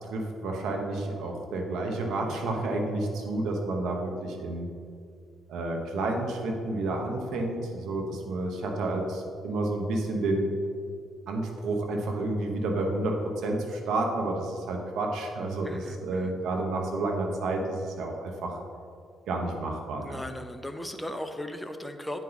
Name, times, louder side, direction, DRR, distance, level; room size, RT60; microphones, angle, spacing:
voice 1, 0.0-4.7 5.5-10.6 11.3-18.6 19.3-20.2, right 2 dB, 80° right, 2 dB, 1.0 m, -30 dB
voice 2, 15.6-16.3 20.0-22.2, left 1 dB, 5° left, 7 dB, 0.6 m, -37 dB
9.2 x 4.5 x 4.0 m, 2.3 s
cardioid pair, 90°, 0 cm